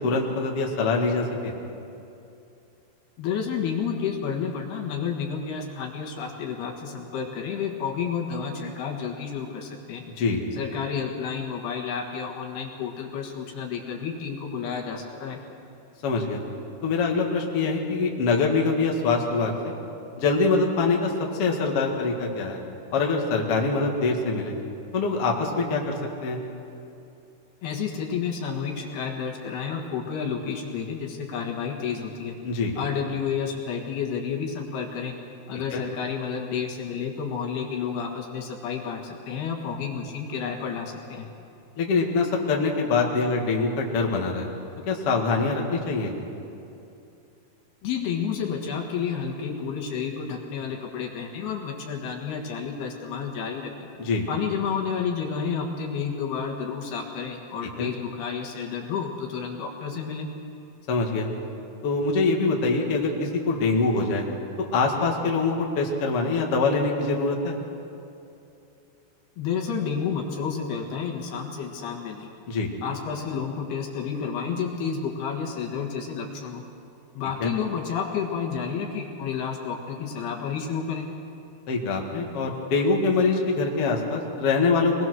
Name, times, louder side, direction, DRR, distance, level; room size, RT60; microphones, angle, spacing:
voice 1, 0.0-1.5 10.2-10.4 16.0-16.4 16.8-19.7 20.2-21.1 21.4-22.6 22.9-24.5 24.9-26.4 32.4-32.7 35.7-35.8 41.8-44.5 44.9-46.1 54.0-54.3 57.8-57.9 60.9-61.3 61.8-64.3 64.6-67.6 72.5-72.7 77.4-77.5 81.7-84.9, left 3 dB, 45° left, 0 dB, 2.2 m, -24 dB
voice 2, 3.2-10.0 10.5-15.4 27.6-32.4 32.8-35.2 35.5-41.3 47.8-53.9 54.3-60.3 69.4-72.3 72.8-76.6 77.2-81.1, left 6 dB, 70° left, 1 dB, 3.5 m, -30 dB
24.0 x 20.0 x 6.2 m, 2.7 s
omnidirectional pair, 5.0 m